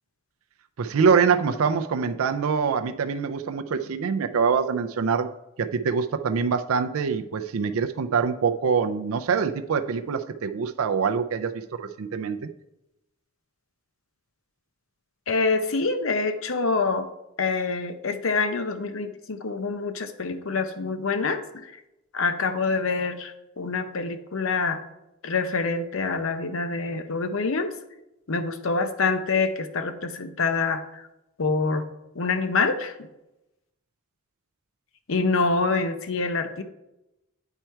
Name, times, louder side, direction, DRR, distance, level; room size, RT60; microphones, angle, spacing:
voice 1, 0.8-5.3 5.6-12.5, right 6 dB, 80° right, 7 dB, 0.4 m, -24 dB
voice 2, 15.3-17.1 17.4-21.7 22.1-24.8 25.2-27.7 28.3-31.1 31.4-31.8 32.1-32.9 35.1-36.6, left 4 dB, 70° left, 8 dB, 0.7 m, -26 dB
9.0 x 4.5 x 4.5 m, 0.91 s
head